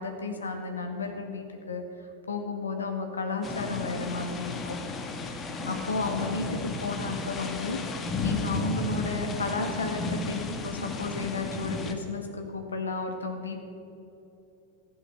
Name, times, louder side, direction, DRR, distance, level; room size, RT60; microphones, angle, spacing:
voice 1, 0.0-4.8 5.6-6.5 6.8-13.6, left 3 dB, 70° left, 4 dB, 1.9 m, -33 dB
sound 1, 3.4-11.9, left 3 dB, 25° left, 1.4 m, -34 dB
14.5 x 11.5 x 6.5 m, 3.0 s
figure-of-eight pair, 90°, 0 cm